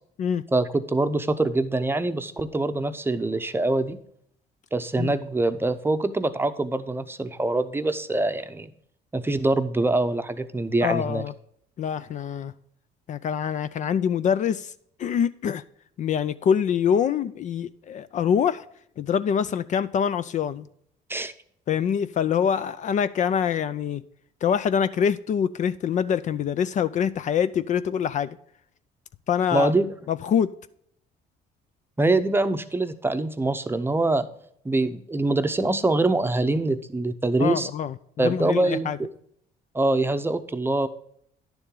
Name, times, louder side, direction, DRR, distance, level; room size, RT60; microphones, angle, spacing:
voice 1, 0.5-4.0 4.7-8.7 9.1-11.2 21.1-21.3 29.5-29.9 32.0-34.2 34.6-37.7 38.2-39.1 39.7-40.9, right 2 dB, 15° right, 0.7 m, -24 dB
voice 2, 10.8-11.3 11.8-12.5 13.1-14.7 15.0-15.6 16.0-18.6 19.0-20.7 21.7-24.0 24.4-28.3 29.3-29.7 30.1-30.5 37.4-39.0, left 8 dB, 45° left, 0.4 m, -25 dB
10.5 x 7.0 x 3.8 m
cardioid pair, 110°, 17 cm